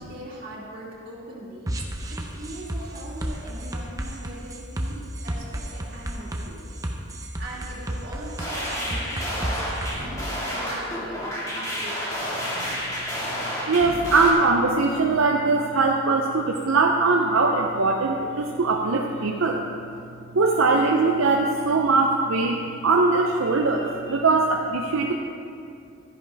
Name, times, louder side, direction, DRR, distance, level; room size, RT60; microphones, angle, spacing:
voice 1, 0.0-1.7 2.1-6.8 7.1-12.8, right 1 dB, 45° right, -8 dB, 2.4 m, -41 dB
sound 1, 1.7-9.9, right 1 dB, 15° right, 0.7 m, -32 dB
sound 2, 8.4-14.3, equal, 15° left, 1.9 m, -30 dB
voice 2, 13.7-19.6 20.3-25.1, right 3 dB, 85° right, 1 dB, 0.6 m, -21 dB
13.0 x 10.0 x 3.4 m, 2.5 s
head